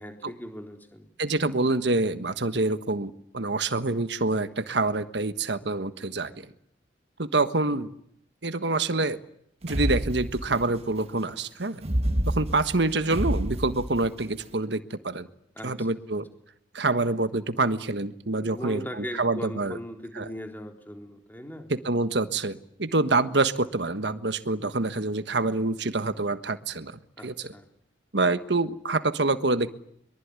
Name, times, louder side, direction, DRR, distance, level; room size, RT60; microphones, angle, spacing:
voice 1, 0.0-1.1 15.6-15.9 18.4-21.7 27.2-27.7, equal, 10° left, 4 dB, 3.8 m, -39 dB
voice 2, 1.2-6.5 7.2-7.9 8.4-9.2 9.6-11.8 12.3-15.3 15.6-16.3 16.7-18.8 19.2-19.8 20.2-20.3 21.7-27.5 28.1-29.8, right 3 dB, 70° right, 11 dB, 1.4 m, -26 dB
sound 1, 9.7-10.8 11.8-14.2, right 1 dB, 35° right, 1.6 m, -28 dB
23.5 x 23.5 x 9.8 m, 0.71 s
head